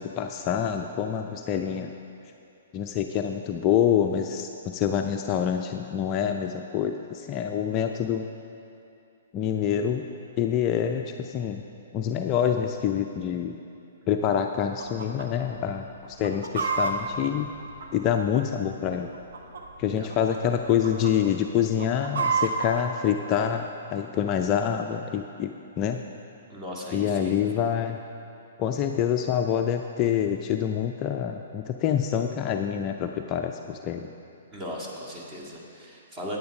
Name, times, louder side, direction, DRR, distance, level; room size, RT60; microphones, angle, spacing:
voice 1, 0.0-1.9 2.7-8.2 9.3-10.0 10.4-11.6 11.9-13.6 14.1-17.5 17.9-19.1 19.8-25.5 25.8-26.0 26.9-28.0 28.6-34.1, left 9 dB, 30° left, 5 dB, 0.4 m, -26 dB
Chicken rooster, 14.8-15.3 15.5-15.6 16.1-18.3 19.0-19.8 20.1-20.4 20.6-21.1 21.6-22.7, right 4 dB, 65° right, 1.1 m, -28 dB
voice 2, 26.5-27.6 34.5-36.4, equal, 20° right, -4 dB, 2.0 m, -38 dB
9.4 x 9.2 x 5.3 m, 2.7 s
figure-of-eight pair, 120°, 0 cm